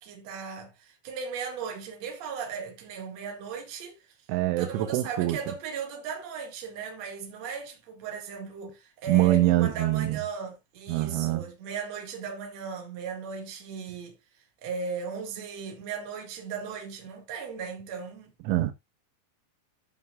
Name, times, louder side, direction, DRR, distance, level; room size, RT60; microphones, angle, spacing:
voice 1, 0.0-4.1 4.6-14.2 14.6-18.3, right 6 dB, 45° right, 2.4 m, -37 dB
voice 2, 4.3-5.4 9.1-10.2 10.9-11.5 18.5-18.7, right 16 dB, 90° right, 3.2 m, -24 dB
14.5 x 5.6 x 2.4 m
omnidirectional pair, 5.5 m